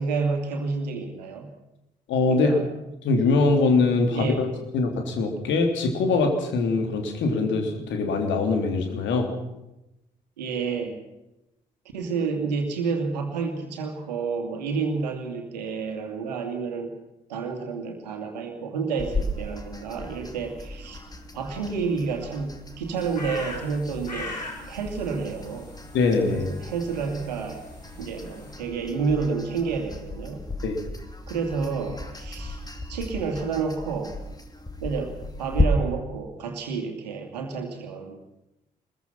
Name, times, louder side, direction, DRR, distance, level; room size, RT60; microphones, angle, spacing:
voice 1, 0.0-1.5 2.3-2.6 4.1-4.5 10.4-11.0 11.9-16.9 17.3-21.0 21.3-24.4 24.7-25.7 26.3-27.6 28.0-30.4 31.3-32.6 32.9-34.2 34.8-38.2, right 5 dB, 80° right, 4 dB, 2.5 m, -29 dB
voice 2, 2.1-2.5 3.0-4.5 4.7-9.3 25.9-26.5 30.6-30.8, left 3 dB, 60° left, 4 dB, 3.4 m, -23 dB
sound 1, 19.0-35.6, left 2 dB, 20° left, 2.9 m, -35 dB
sound 2, 23.0-28.6, left 2 dB, 90° left, 2.7 m, -41 dB
23.0 x 21.5 x 5.9 m, 0.93 s
figure-of-eight pair, 40°, 21 cm